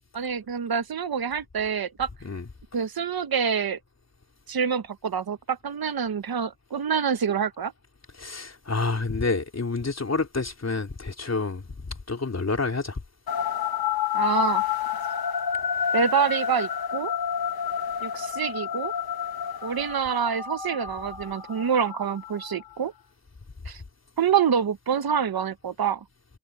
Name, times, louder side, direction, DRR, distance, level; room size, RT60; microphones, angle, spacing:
voice 1, 0.1-2.1 2.7-3.8 4.5-7.7 14.1-14.6 15.9-17.1 18.0-18.9 19.6-22.9 23.7-23.8 24.2-26.0, right 7 dB, 85° right, 1.1 m, -26 dB
voice 2, 8.2-11.6 12.1-13.0, left 3 dB, 45° left, 3.7 m, -28 dB
sound 1, 13.3-22.7, left 8 dB, 80° left, 1.3 m, -29 dB
wide cardioid pair, 110°, 36 cm